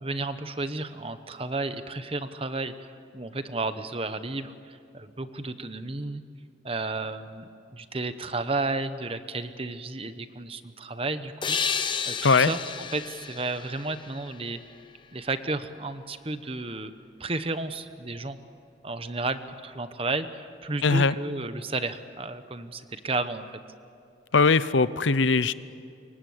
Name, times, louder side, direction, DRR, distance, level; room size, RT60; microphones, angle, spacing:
voice 1, 0.0-6.2 6.6-12.6 12.9-14.6 15.1-16.9 17.2-18.4 18.8-23.6, right 3 dB, 30° right, 11 dB, 1.0 m, -32 dB
sound 1, 11.4-14.9, left 6 dB, 25° left, 1.0 m, -32 dB
voice 2, 20.8-21.1 24.3-25.5, left 4 dB, 75° left, 16 dB, 0.7 m, -20 dB
28.0 x 24.0 x 8.0 m, 2.5 s
head